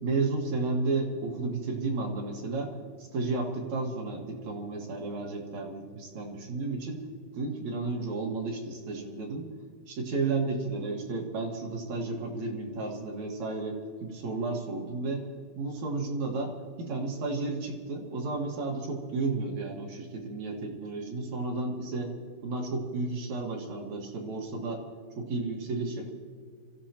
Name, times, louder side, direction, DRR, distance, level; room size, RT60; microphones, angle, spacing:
voice 1, 0.0-7.0 7.3-9.5 9.9-15.3 15.6-22.1 22.4-24.9 25.2-26.1, right 3 dB, 60° right, -1 dB, 1.9 m, -32 dB
26.5 x 14.5 x 2.9 m, 2.1 s
omnidirectional pair, 5.5 m